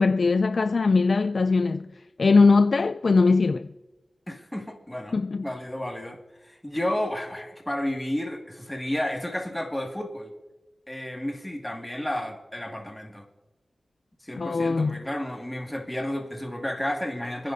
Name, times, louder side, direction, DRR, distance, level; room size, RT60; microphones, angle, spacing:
voice 1, 0.0-1.9 2.2-3.7 5.1-5.4 14.4-15.0, left 4 dB, 65° left, 0.3 m, -21 dB
voice 2, 4.3-5.1 5.4-10.3 10.9-13.3 14.2-17.5, left 1 dB, 15° left, 2.0 m, -32 dB
27.5 x 10.0 x 2.7 m
cardioid pair, 50°, 0 cm